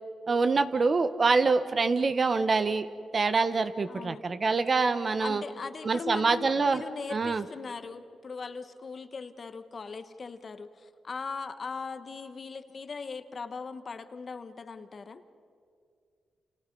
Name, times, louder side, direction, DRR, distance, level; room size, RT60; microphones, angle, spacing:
voice 1, 0.3-2.9 3.1-5.4 5.8-6.8 7.1-7.4, right 4 dB, 40° right, 11 dB, 1.1 m, -25 dB
voice 2, 3.9-4.2 5.2-15.3, left 4 dB, 45° left, 10 dB, 1.3 m, -39 dB
30.0 x 28.0 x 5.5 m, 2.3 s
cardioid pair, 85°, 0 cm